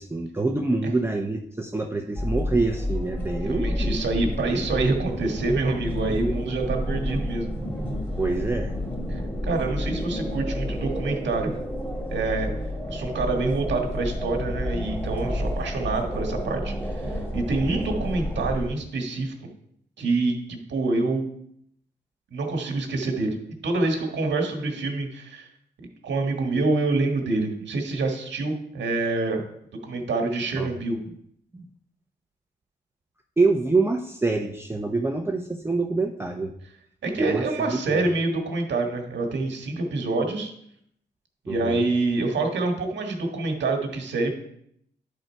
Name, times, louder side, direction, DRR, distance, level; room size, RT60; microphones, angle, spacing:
voice 1, 0.0-4.0 8.2-8.8 30.6-30.7 31.5-31.7 33.4-36.5 37.2-38.0 41.5-41.9, right 3 dB, 15° right, 3 dB, 0.7 m, -26 dB
sound 1, 2.2-18.7, left 1 dB, 10° left, 2.1 m, -30 dB
voice 2, 3.4-7.5 9.1-11.5 12.1-12.5 12.9-19.3 20.0-21.3 22.3-23.4 23.6-25.5 26.0-29.4 29.8-31.0 37.0-40.5 41.4-44.4, right 3 dB, 80° right, 4 dB, 1.5 m, -26 dB
10.5 x 3.9 x 4.5 m, 0.70 s
cardioid pair, 70°, 18 cm